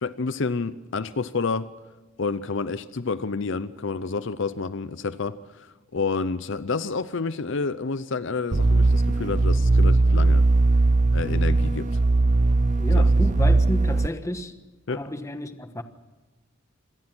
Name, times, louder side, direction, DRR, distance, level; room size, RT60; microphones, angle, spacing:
voice 1, 0.0-1.7 2.2-5.7 5.9-10.4 11.1-11.9 12.9-13.0 14.9-15.0, left 4 dB, 65° left, 0.7 m, -29 dB
sound 1, 8.5-14.1, right 2 dB, 35° right, 0.6 m, -19 dB
voice 2, 12.8-14.6 14.9-15.8, left 1 dB, 15° left, 1.2 m, -31 dB
26.0 x 18.5 x 6.2 m
head